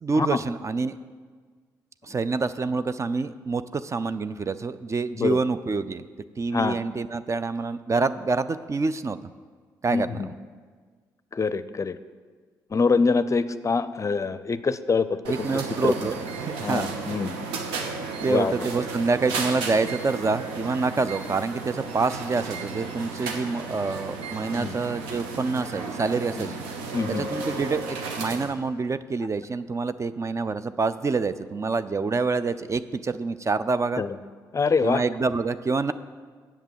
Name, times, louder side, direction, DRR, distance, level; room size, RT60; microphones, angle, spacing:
voice 1, 0.0-1.0 2.0-6.1 6.4-9.2 9.8-10.3 15.3-16.2 16.4-17.1 18.2-26.5 27.1-34.0 34.8-35.9, right 4 dB, 35° right, 13 dB, 0.5 m, -27 dB
voice 2, 9.9-10.3 11.3-12.0 12.7-15.1 15.8-15.9 16.6-17.4 18.3-18.6 24.6-24.7 26.4-26.5 26.9-27.3 34.0-34.2 34.5-35.0, left 4 dB, 35° left, 13 dB, 0.5 m, -24 dB
sound 1, 15.2-28.5, right 4 dB, 85° right, 0.9 m, -34 dB
8.0 x 7.2 x 7.5 m, 1.6 s
hypercardioid pair, 50°, 9 cm